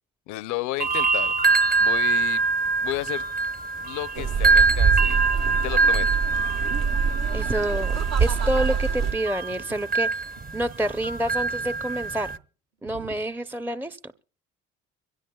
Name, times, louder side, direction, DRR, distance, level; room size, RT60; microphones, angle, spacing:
voice 1, 0.3-1.3 1.8-2.4 2.8-3.2 3.8-5.2 5.6-6.1, left 16 dB, 70° left, 0.6 m, -32 dB
sound 1, 0.8-12.4, right 4 dB, 25° right, 0.9 m, -24 dB
sound 2, 2.3-2.7 3.1-4.4 4.9-5.6 6.0-6.9 7.2-8.2 8.8-9.9 10.4-10.6 10.9-11.0 11.5-11.8 12.8-13.2, right 5 dB, 70° right, 2.1 m, -47 dB
sound 3, 4.1-9.1, right 5 dB, 55° right, 1.1 m, -25 dB
voice 2, 7.3-7.9 8.2-10.2 10.5-12.3 12.8-14.0, right 1 dB, 5° right, 0.6 m, -28 dB
23.5 x 17.0 x 2.3 m
supercardioid pair, 65°, 31 cm